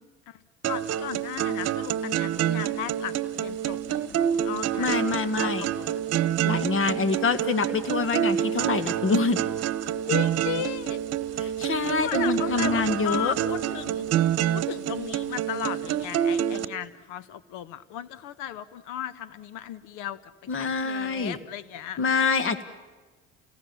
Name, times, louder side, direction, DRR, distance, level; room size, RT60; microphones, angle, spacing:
voice 1, 0.3-5.0 5.3-6.0 10.1-11.4 12.0-14.1 14.5-22.0 22.5-22.6, left 10 dB, 70° left, 17 dB, 1.2 m, -36 dB
sound 1, 0.6-16.7, right 10 dB, 50° right, 1.2 m, -27 dB
voice 2, 4.8-5.7 6.5-9.4 11.4-13.3 20.5-21.4 22.0-22.6, left 4 dB, 40° left, 13 dB, 1.9 m, -26 dB
30.0 x 18.0 x 7.2 m, 1.3 s
supercardioid pair, 90°, 32 cm